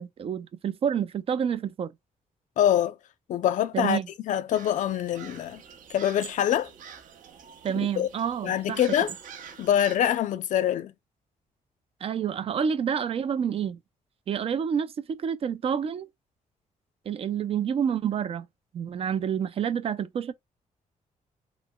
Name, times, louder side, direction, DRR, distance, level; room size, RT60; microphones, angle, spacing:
voice 1, 0.0-1.9 3.7-4.1 7.6-8.8 12.0-13.8 14.3-16.1 17.1-18.5 18.7-20.3, right 8 dB, 45° right, 0.4 m, -28 dB
voice 2, 2.6-2.9 3.3-4.0 4.3-5.6 5.9-6.7 7.7-8.1 8.4-9.1 9.6-10.9, left 10 dB, 65° left, 0.4 m, -24 dB
sound 1, 4.5-10.0, right 7 dB, 75° right, 0.7 m, -46 dB
3.0 x 3.0 x 2.2 m
cardioid pair, 135°, 14 cm